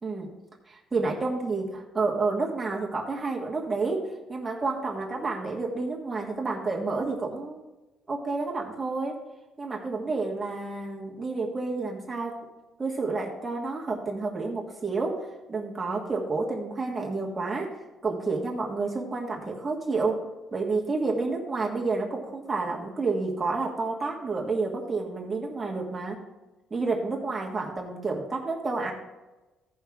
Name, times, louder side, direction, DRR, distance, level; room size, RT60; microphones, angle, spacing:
voice 1, 0.0-0.3 0.7-7.6 8.1-9.2 9.6-12.5 12.8-17.8 18.0-20.3 20.5-26.2 26.7-28.9, right 3 dB, 15° right, -2 dB, 1.5 m, -30 dB
16.0 x 5.5 x 3.6 m, 1.1 s
cardioid pair, 160°, 0 cm